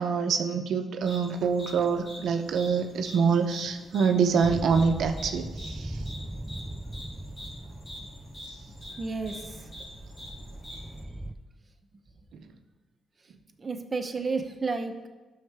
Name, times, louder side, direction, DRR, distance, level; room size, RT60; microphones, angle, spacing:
voice 1, 0.0-6.0 12.3-12.4, right 5 dB, 75° right, 5 dB, 0.7 m, -26 dB
sound 1, 1.0-11.0, left 1 dB, 30° left, 2.8 m, -46 dB
sound 2, 4.4-11.3, right 1 dB, 10° right, 0.4 m, -39 dB
voice 2, 9.0-9.7 13.6-15.1, right 4 dB, 25° right, 4 dB, 0.9 m, -32 dB
12.5 x 6.7 x 3.4 m, 1.2 s
cardioid pair, 105°, 0 cm